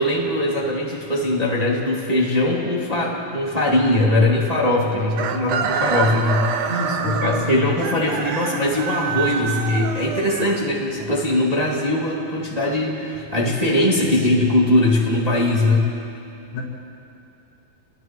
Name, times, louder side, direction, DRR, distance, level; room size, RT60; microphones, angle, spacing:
voice 1, 0.0-6.7 7.0-15.9, left 1 dB, 15° right, -4 dB, 1.9 m, -21 dB
Chicken rooster, 5.1-11.1, right 7 dB, 70° right, 1.6 m, -26 dB
voice 2, 6.6-7.7 13.9-14.4 16.5-16.6, left 1 dB, 90° left, -5 dB, 6.0 m, -28 dB
29.0 x 21.0 x 4.7 m, 2.7 s
omnidirectional pair, 4.3 m